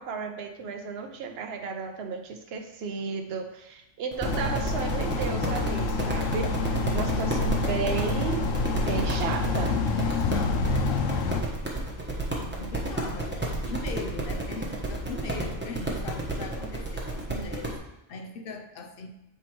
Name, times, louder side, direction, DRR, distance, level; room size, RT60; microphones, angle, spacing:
voice 1, 0.0-6.6 6.9-8.5 8.8-10.1, right 5 dB, 60° right, 5 dB, 0.9 m, -34 dB
sound 1, 4.1-17.8, right 2 dB, 10° right, 1.0 m, -32 dB
sound 2, 4.2-11.4, left 3 dB, 90° left, 1.0 m, -28 dB
voice 2, 10.0-11.1 11.7-11.9 12.2-13.4 13.6-17.8 18.1-19.1, left 3 dB, 55° left, 5 dB, 0.7 m, -40 dB
6.9 x 4.5 x 3.0 m, 0.87 s
omnidirectional pair, 1.3 m